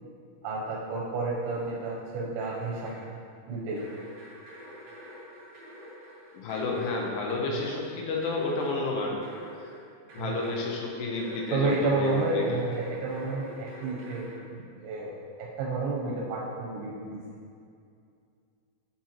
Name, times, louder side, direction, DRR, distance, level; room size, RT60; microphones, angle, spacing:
voice 1, 0.4-3.1 3.5-3.8 7.5-7.7 10.2-10.5 11.5-17.2, right 3 dB, 90° right, -4 dB, 3.1 m, -31 dB
sound 1, 1.4-2.1 2.4-3.1 3.7-10.8 11.1-14.4, equal, 65° right, 3.1 m, -47 dB
voice 2, 6.3-9.2 10.1-12.6, left 3 dB, 80° left, -1 dB, 2.9 m, -30 dB
11.0 x 4.4 x 3.0 m, 2.4 s
omnidirectional pair, 4.9 m